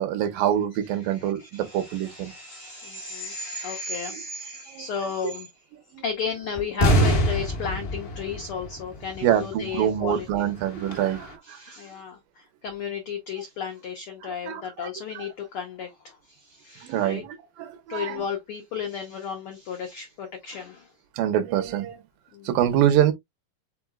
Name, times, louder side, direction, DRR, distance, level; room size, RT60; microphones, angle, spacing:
voice 1, 0.0-2.3 4.7-4.9 5.9-6.0 9.2-11.6 14.2-14.9 16.8-18.2 21.2-22.0 22.4-23.1, right 11 dB, 90° right, 2.6 m, -25 dB
voice 2, 1.0-5.5 6.0-10.5 11.4-17.2 17.9-20.9 22.3-22.6, left 6 dB, 90° left, 1.2 m, -34 dB
sound 1, 6.6-9.2 9.5-9.6 10.1-10.2 10.6-11.2, equal, 65° left, 0.9 m, -24 dB
5.9 x 4.0 x 2.3 m
omnidirectional pair, 3.9 m